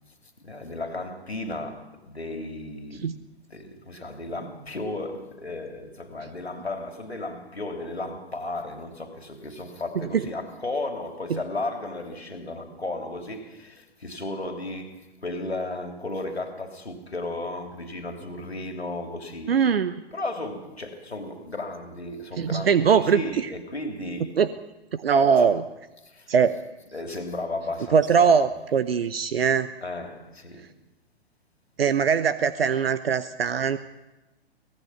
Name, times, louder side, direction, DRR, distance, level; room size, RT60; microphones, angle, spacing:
voice 1, 0.4-3.1 3.5-19.6 20.1-24.4 25.1-25.5 26.0-26.3 26.9-28.5 29.8-30.6, left 2 dB, 85° left, 3.3 m, -34 dB
voice 2, 19.5-19.9 22.4-23.2 24.4-24.5 24.9-25.6 26.3-26.6 27.9-29.7 31.8-33.8, right 6 dB, 70° right, 1.0 m, -21 dB
25.0 x 18.0 x 5.8 m
figure-of-eight pair, 115°, 31 cm